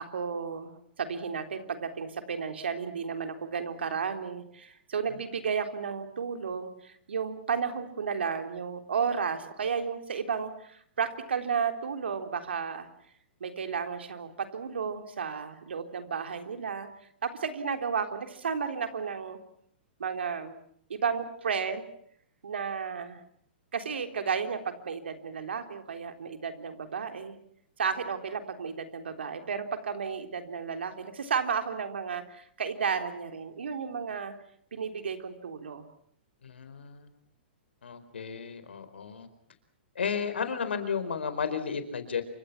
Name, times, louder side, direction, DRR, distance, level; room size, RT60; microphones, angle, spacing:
voice 1, 0.0-12.9 13.4-16.9 17.2-19.4 20.0-20.6 20.9-21.9 22.4-23.2 23.7-27.4 27.8-34.3 34.7-35.9, right 6 dB, 85° right, 7 dB, 3.7 m, -33 dB
voice 2, 36.4-37.1 37.8-39.3 39.9-42.2, left 6 dB, 85° left, 10 dB, 4.6 m, -33 dB
28.5 x 25.0 x 6.0 m, 0.67 s
hypercardioid pair, 125°, 6 cm